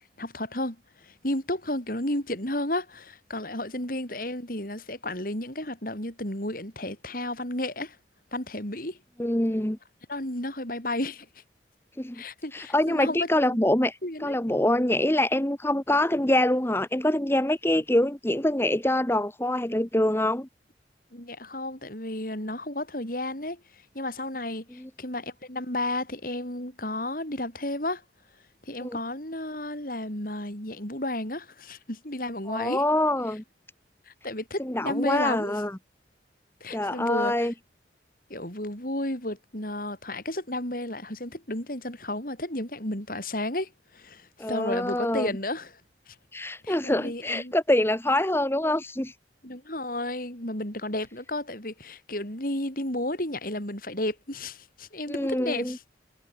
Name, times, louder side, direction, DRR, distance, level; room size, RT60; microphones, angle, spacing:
voice 1, 0.2-8.0 8.3-9.0 10.1-11.3 12.1-13.6 14.0-14.4 21.1-23.6 23.9-28.0 28.7-32.8 34.1-35.5 36.6-37.5 38.3-45.8 46.1-46.2 46.6-47.5 49.4-55.8, left 1 dB, 50° left, 8.0 m, -32 dB
voice 2, 9.2-9.8 12.0-12.2 12.5-20.5 24.8-24.9 28.8-29.0 32.5-33.4 34.6-35.8 36.7-37.5 44.4-45.3 46.3-49.1 55.1-55.8, left 1 dB, 15° left, 1.4 m, -25 dB
head